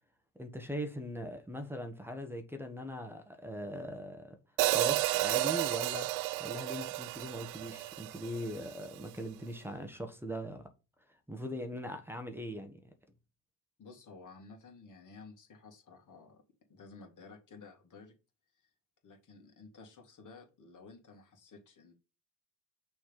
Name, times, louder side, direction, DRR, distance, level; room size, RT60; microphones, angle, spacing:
voice 1, 0.3-4.4 4.7-6.1 6.4-10.7 11.3-12.8, equal, 5° right, 1.2 m, -40 dB
Hi-hat, 4.6-8.8, right 19 dB, 70° right, 0.5 m, -32 dB
voice 2, 13.8-16.4 16.7-18.1 19.0-21.9, left 4 dB, 40° left, 2.3 m, -53 dB
6.2 x 3.5 x 5.5 m
hypercardioid pair, 60°, 46 cm